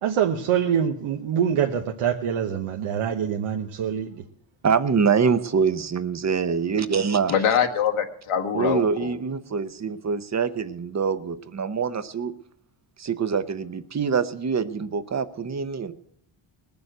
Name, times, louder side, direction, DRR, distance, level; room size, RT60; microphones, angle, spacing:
voice 1, 0.0-4.2, right 8 dB, 85° right, 3 dB, 1.1 m, -25 dB
voice 2, 4.6-7.3 8.5-12.3 13.0-15.9, right 6 dB, 35° right, 12 dB, 0.8 m, -24 dB
voice 3, 7.3-9.1, left 8 dB, 85° left, 4 dB, 1.7 m, -24 dB
20.0 x 7.0 x 7.9 m, 0.72 s
cardioid pair, 125°, 50 cm